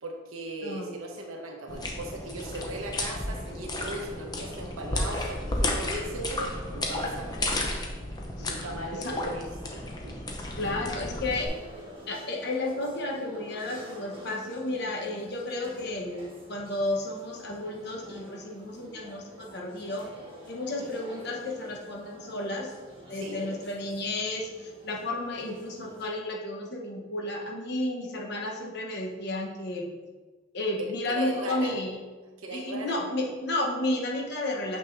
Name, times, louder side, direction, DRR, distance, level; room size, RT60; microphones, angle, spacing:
voice 1, 0.0-7.7 8.4-9.7 10.0-10.1 10.6-10.7 23.1-23.6 30.8-31.8 32.4-33.0, right 1 dB, 85° right, 1 dB, 1.1 m, -38 dB
voice 2, 0.6-0.9 8.4-8.5 8.9-9.2 10.6-11.5 12.1-20.1 20.5-22.7 23.1-29.9 30.5-32.0 32.5-34.8, left 2 dB, 50° left, 0 dB, 1.1 m, -32 dB
sound 1, 1.7-11.5, left 1 dB, 20° left, 0.7 m, -33 dB
sound 2, 11.3-26.0, right 1 dB, 25° right, 1.6 m, -47 dB
7.1 x 6.1 x 2.7 m, 1.3 s
head